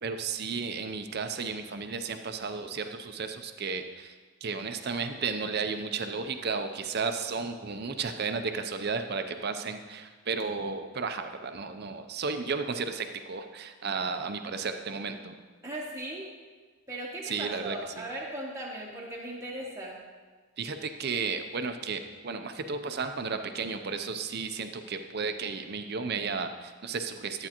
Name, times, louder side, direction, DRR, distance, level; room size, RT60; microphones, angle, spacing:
voice 1, 0.0-15.4 17.2-18.0 20.6-27.5, right 4 dB, 45° right, 8 dB, 0.5 m, -33 dB
voice 2, 15.6-16.3 16.9-20.0, right 1 dB, 15° right, -4 dB, 0.9 m, -38 dB
11.0 x 8.8 x 2.9 m, 1.4 s
head